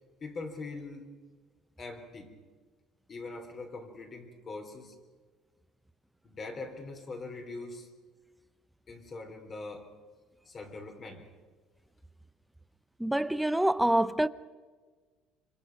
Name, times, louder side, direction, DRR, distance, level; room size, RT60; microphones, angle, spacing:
voice 1, 0.2-1.1 1.8-2.3 3.1-4.9 6.2-7.9 8.9-9.9 10.5-11.3, left 3 dB, 30° left, 3.4 m, -42 dB
voice 2, 13.0-14.3, right 1 dB, 5° right, 0.6 m, -26 dB
25.0 x 24.5 x 5.9 m
cardioid pair, 140°, 0 cm